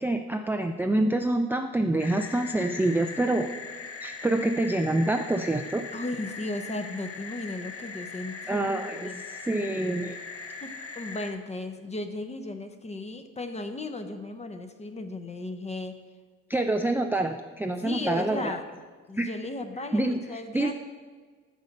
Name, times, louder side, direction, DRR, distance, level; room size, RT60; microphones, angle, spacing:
voice 1, 0.0-3.5 4.0-5.8 8.5-10.2 16.5-18.6 19.1-19.3 19.9-20.7, right 2 dB, 5° right, 5 dB, 0.4 m, -26 dB
sound 1, 2.0-11.3, left 4 dB, 50° left, 1.1 m, -40 dB
voice 2, 5.9-9.2 10.6-16.0 17.8-18.6 19.1-20.7, left 2 dB, 20° left, 7 dB, 0.8 m, -35 dB
6.8 x 6.5 x 5.3 m, 1.5 s
cardioid pair, 90°, 30 cm